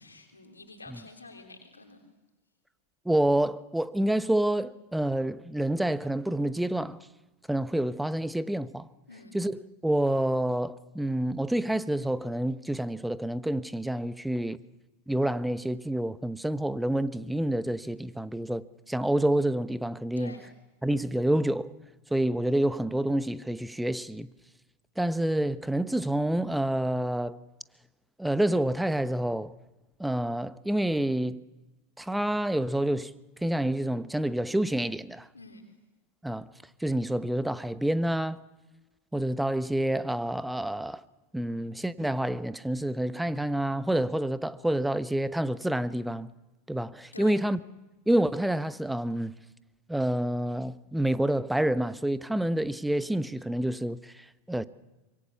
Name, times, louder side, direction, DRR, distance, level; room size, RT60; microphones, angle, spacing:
voice 1, 0.0-2.1 9.1-9.4 20.2-20.5 35.3-35.7 47.1-47.4, left 3 dB, 80° left, 3.4 m, -48 dB
voice 2, 3.0-7.0 7.5-8.9 9.3-14.6 15.1-20.4 20.8-21.7 22.1-24.3 25.0-27.4 28.2-29.5 30.0-31.4 32.0-33.1 33.4-35.3 36.2-36.5 36.8-38.4 39.1-41.0 41.3-46.3 46.7-47.6 48.1-49.3 49.9-54.6, right 1 dB, 5° right, 0.9 m, -28 dB
25.5 x 23.5 x 7.0 m
figure-of-eight pair, 85°, 0 cm